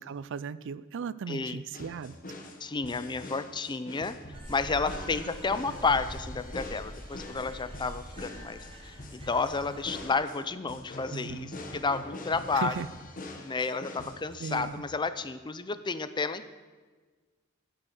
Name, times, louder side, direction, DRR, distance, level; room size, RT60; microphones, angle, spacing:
voice 1, 0.0-2.1 11.1-11.5 12.5-12.9 14.4-14.8, right 6 dB, 60° right, 17 dB, 0.4 m, -37 dB
voice 2, 1.3-1.6 2.6-4.2 4.5-12.7 13.4-16.5, left 4 dB, 20° left, 13 dB, 0.5 m, -31 dB
sound 1, 1.7-14.8, left 2 dB, 40° left, 1.2 m, -44 dB
sound 2, 4.3-10.1, equal, 25° right, 1.9 m, -44 dB
14.5 x 6.3 x 6.4 m, 1.4 s
head